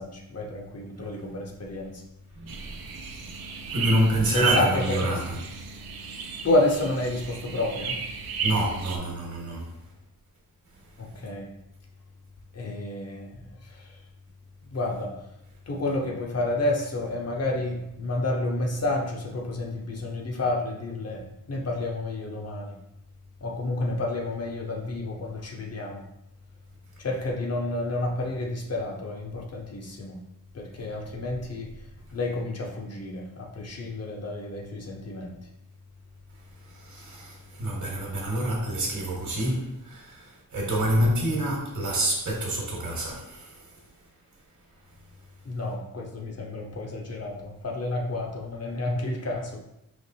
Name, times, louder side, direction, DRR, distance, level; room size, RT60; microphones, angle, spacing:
voice 1, 0.0-2.0 4.3-5.2 6.4-8.0 11.0-11.5 12.5-14.0 14.7-15.3 15.7-22.8 23.4-26.1 27.0-30.2 30.5-31.7 32.1-35.4 45.4-49.6, left 2 dB, 45° left, 0.6 m, -30 dB
voice 2, 2.3-2.8 3.7-5.4 8.4-9.8 36.6-43.8, right 1 dB, 55° right, 1.1 m, -27 dB
sound 1, 2.5-9.0, right 5 dB, 90° right, 0.6 m, -33 dB
5.2 x 3.0 x 2.7 m
wide cardioid pair, 165°, 36 cm